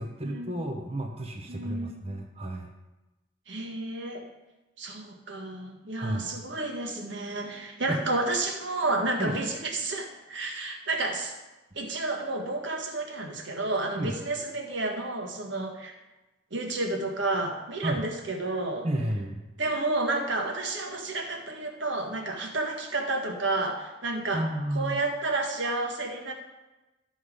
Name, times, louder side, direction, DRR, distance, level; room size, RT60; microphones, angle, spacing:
voice 1, 0.0-2.7 6.0-6.3 7.9-8.0 9.2-9.4 14.0-14.1 17.8-18.0 18.8-19.4 24.3-25.0, right 1 dB, 30° right, 2 dB, 1.0 m, -31 dB
voice 2, 1.5-2.0 3.5-4.3 4.8-11.3 11.7-15.9 16.5-18.9 19.6-24.5 24.7-26.3, right 2 dB, 65° right, 2 dB, 1.6 m, -31 dB
13.0 x 5.6 x 5.1 m, 1.1 s
head